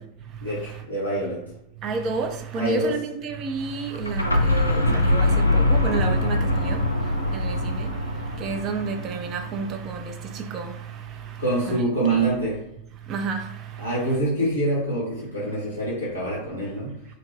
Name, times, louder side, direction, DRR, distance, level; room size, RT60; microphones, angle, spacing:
voice 1, 0.4-1.4 2.5-2.9 11.4-12.6 13.8-16.9, right 1 dB, 90° right, 1.1 m, -25 dB
voice 2, 1.8-6.9 7.3-8.0 8.3-10.8 11.3-11.4 11.7-12.3 13.1-13.6, right 5 dB, 35° right, 0.4 m, -30 dB
sound 1, 3.9-9.7, left 2 dB, 85° left, 0.4 m, -23 dB
2.8 x 2.1 x 3.2 m
figure-of-eight pair, 90°, 0 cm